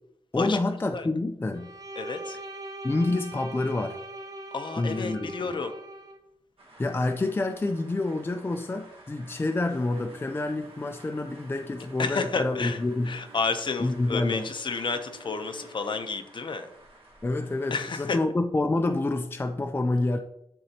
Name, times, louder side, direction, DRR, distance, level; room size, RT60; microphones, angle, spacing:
voice 1, 0.3-1.7 2.8-4.0 4.8-5.6 6.8-13.1 13.8-14.4 17.2-20.2, left 2 dB, 20° left, 5 dB, 0.4 m, -28 dB
Bowed string instrument, 1.5-6.2, right 1 dB, 35° right, 0.8 m, -41 dB
voice 2, 2.0-2.4 4.5-5.7 12.0-16.7 17.7-18.2, left 4 dB, 50° left, 7 dB, 0.7 m, -31 dB
sound 1, 6.6-18.2, right 1 dB, 60° right, 1.6 m, -53 dB
sound 2, 9.7-16.0, right 3 dB, 80° right, 1.0 m, -52 dB
11.0 x 3.9 x 2.9 m, 0.78 s
wide cardioid pair, 135°, 11 cm